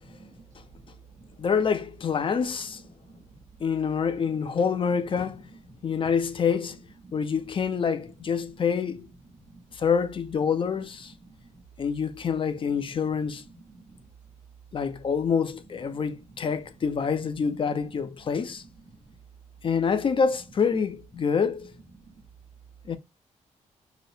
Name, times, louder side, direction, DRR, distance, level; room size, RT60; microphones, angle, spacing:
voice 1, 0.1-0.4 1.2-1.3 3.1-3.4 7.0-7.1 9.3-9.6 11.2-11.6 13.5-14.0 15.9-16.1 18.9-19.0 22.0-22.2, right 3 dB, 75° right, 1.1 m, -52 dB
voice 2, 1.4-2.8 3.6-5.5 5.8-6.8 7.1-9.1 9.7-11.1 11.8-13.5 14.7-18.6 19.6-21.7 22.9-23.0, left 6 dB, 45° left, 0.5 m, -26 dB
4.9 x 2.0 x 2.6 m
cardioid pair, 100°, 13 cm